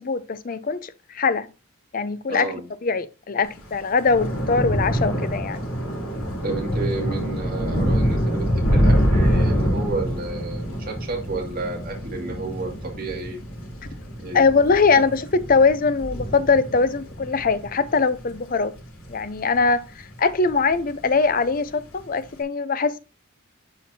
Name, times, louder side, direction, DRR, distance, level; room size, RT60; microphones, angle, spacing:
voice 1, 0.0-1.5 1.9-2.5 2.8-5.6 14.3-18.7 19.1-23.0, left 4 dB, 40° left, 0.5 m, -21 dB
voice 2, 2.3-2.7 6.4-13.4 14.2-14.4, right 3 dB, 45° right, 2.2 m, -31 dB
Thunder / Rain, 3.5-20.1 20.5-20.9 21.2-21.4, equal, 90° left, 3.5 m, -25 dB
11.5 x 4.6 x 2.7 m
head